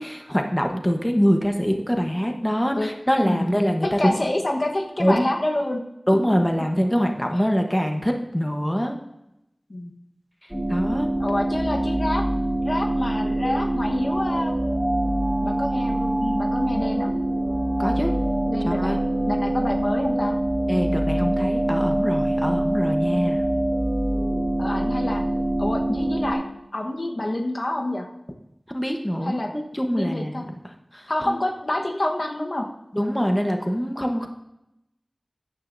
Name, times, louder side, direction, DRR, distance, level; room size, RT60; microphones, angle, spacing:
voice 1, 0.0-4.1 5.0-5.2 6.1-9.0 10.7-11.1 17.8-18.2 18.6-19.0 20.7-23.5 28.7-30.5 30.9-31.4 32.9-34.3, equal, 10° left, 3 dB, 1.0 m, -24 dB
voice 2, 3.8-5.8 9.7-9.9 11.2-12.2 12.6-14.6 15.4-17.1 18.5-19.0 19.3-20.3 24.6-25.2 25.6-26.4 26.7-28.1 29.2-29.5 29.9-30.5 31.1-32.7, left 1 dB, 60° left, 1 dB, 1.1 m, -27 dB
sound 1, 10.5-26.3, right 1 dB, 10° right, 4.1 m, -24 dB
15.0 x 9.6 x 2.6 m, 0.87 s
wide cardioid pair, 50°, 0 cm